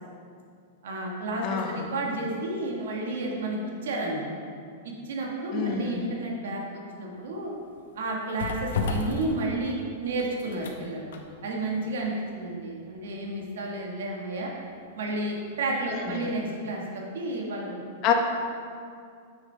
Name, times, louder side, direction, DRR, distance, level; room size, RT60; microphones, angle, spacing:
voice 1, 0.8-4.3 5.0-7.5 7.9-11.1 11.4-14.5 14.9-17.8, right 2 dB, 80° right, -1 dB, 1.4 m, -31 dB
voice 2, 1.4-1.9 5.5-6.1 16.1-16.3 18.0-18.1, left 9 dB, 40° left, 2 dB, 1.0 m, -28 dB
sound 1, 7.1-15.1 15.4-15.6, left 4 dB, 80° left, 0.9 m, -36 dB
9.0 x 6.0 x 3.3 m, 2.3 s
hypercardioid pair, 130°, 0 cm